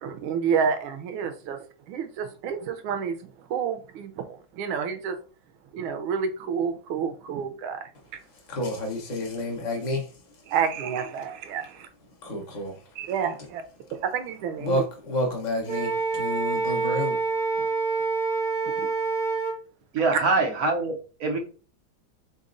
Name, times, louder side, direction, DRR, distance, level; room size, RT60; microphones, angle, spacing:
voice 1, 0.0-5.2 5.7-7.9 10.5-11.9 13.0-13.6 13.9-14.8 17.6-17.7 18.6-18.9 20.1-20.2, right 7 dB, 90° right, 1.4 m, -29 dB
voice 2, 8.2-10.5 12.2-13.0 13.8-14.0 14.6-17.4, left 1 dB, 70° left, 0.4 m, -30 dB
Wind instrument woodwind instrument, 15.7-19.6, right 4 dB, 35° right, 1.7 m, -27 dB
voice 3, 19.9-21.4, right 3 dB, 65° right, 0.9 m, -24 dB
4.1 x 4.0 x 2.5 m
omnidirectional pair, 2.2 m